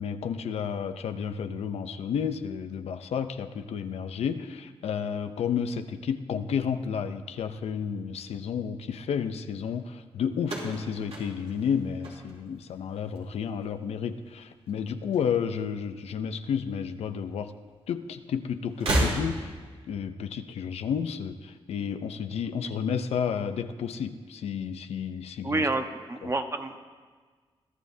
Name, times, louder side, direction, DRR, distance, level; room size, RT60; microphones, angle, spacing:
voice 1, 0.0-17.5 17.9-19.6 19.9-25.6 26.2-26.3, left 7 dB, 90° left, 9 dB, 0.6 m, -31 dB
sound 1, 10.4-12.7 13.0-13.6 14.7-15.7 16.0-16.1 17.2-17.3 18.7-19.7, right 1 dB, 75° right, 3.3 m, -31 dB
voice 2, 25.4-26.9, right 2 dB, 30° right, 6 dB, 1.1 m, -29 dB
22.5 x 12.5 x 2.7 m, 1.5 s
cardioid pair, 70°, 10 cm